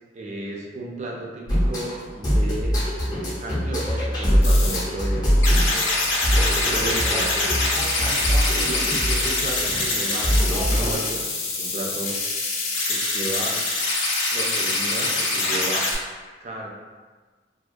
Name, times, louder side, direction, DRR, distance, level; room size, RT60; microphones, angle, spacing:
voice 1, 0.1-2.8 3.0-5.8 6.5-7.4 8.5-8.8 9.1-12.2 12.8-13.6 14.3-15.9 16.4-16.7, right 1 dB, 40° right, -2 dB, 0.4 m, -33 dB
sound 1, 1.5-11.0, equal, 20° left, 0.5 m, -23 dB
sound 2, 4.4-4.8 5.4-15.9, left 2 dB, 85° left, 0.5 m, -24 dB
2.3 x 2.1 x 2.5 m, 1.4 s
head